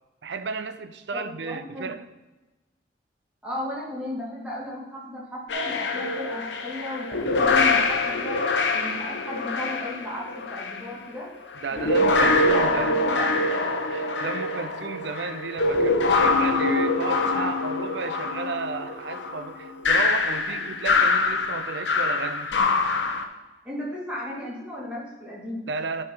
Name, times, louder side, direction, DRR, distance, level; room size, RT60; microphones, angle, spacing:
voice 1, 0.2-2.0 11.6-13.0 13.9-22.5 25.7-26.0, right 4 dB, 70° right, 0.6 m, -33 dB
voice 2, 1.1-1.9 3.4-8.4 8.7-11.3 11.7-13.5 17.3-17.5 20.5-20.6 23.6-25.6, left 1 dB, 5° right, 2.3 m, -35 dB
sound 1, 5.5-10.9 11.6-23.2, left 3 dB, 85° left, 0.8 m, -24 dB
10.5 x 4.2 x 5.6 m
head